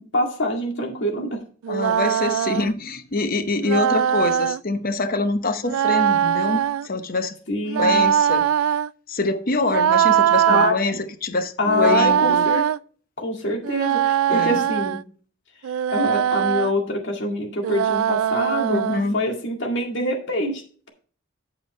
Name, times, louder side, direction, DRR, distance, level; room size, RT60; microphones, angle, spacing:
voice 1, 0.0-1.4 7.5-8.0 10.5-10.7 11.6-12.6 13.2-15.0 15.9-20.6, left 1 dB, 60° left, 2.1 m, -25 dB
sound 1, 1.6-2.7 3.6-4.6 5.6-6.9 7.6-8.9 9.7-10.7 11.6-12.8 13.6-15.0 15.6-16.7 17.6-19.0, right 9 dB, 90° right, 0.3 m, -21 dB
voice 2, 1.7-7.4 7.8-8.5 9.1-12.4 14.3-14.7 18.7-19.2, left 2 dB, 45° left, 0.9 m, -25 dB
8.7 x 8.4 x 3.1 m
head